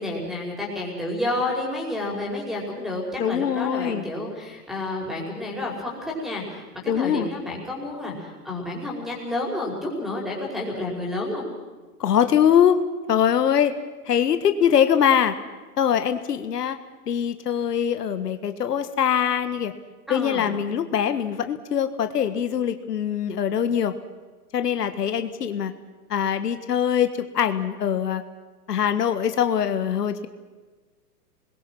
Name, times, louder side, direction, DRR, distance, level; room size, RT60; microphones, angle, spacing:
voice 1, 0.0-6.6 7.0-11.5 20.1-20.4, left 2 dB, ahead, -1 dB, 5.3 m, -30 dB
voice 2, 3.2-4.0 6.9-7.3 12.0-12.8 13.1-13.7 14.1-15.3 15.8-16.8 17.1-19.7 20.1-23.9 24.5-25.7 26.1-28.2 28.7-30.3, left 9 dB, 80° left, 10 dB, 1.7 m, -22 dB
28.0 x 22.0 x 6.2 m, 1.3 s
hypercardioid pair, 150°, 47 cm